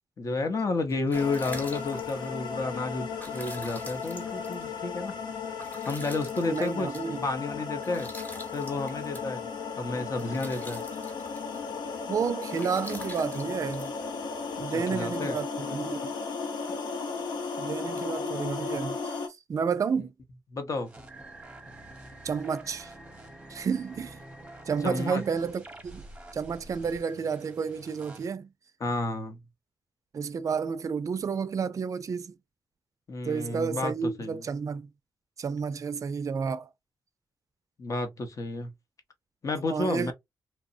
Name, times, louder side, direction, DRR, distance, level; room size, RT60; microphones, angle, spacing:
voice 1, 0.2-5.1 5.8-6.9 7.2-8.1 8.5-9.4 9.8-10.8 14.9-15.4 20.5-20.9 24.8-25.2 28.8-29.4 33.1-34.4 37.8-38.7 39.4-40.1, left 3 dB, 45° left, 0.7 m, -31 dB
sound 1, 0.8-14.6, left 1 dB, 20° left, 0.9 m, -48 dB
sound 2, 1.1-19.3, left 5 dB, 90° left, 0.6 m, -35 dB
voice 2, 6.5-7.2 12.1-13.9 14.6-16.1 17.6-19.2 19.5-20.1 22.2-22.9 23.5-24.2 24.7-26.0 26.3-28.5 30.1-32.4 33.2-34.9 35.4-36.7 39.6-40.1, right 6 dB, 45° right, 0.4 m, -31 dB
sound 3, 20.8-28.3, right 1 dB, 15° right, 0.8 m, -48 dB
2.9 x 2.0 x 2.6 m
cardioid pair, 80°, 8 cm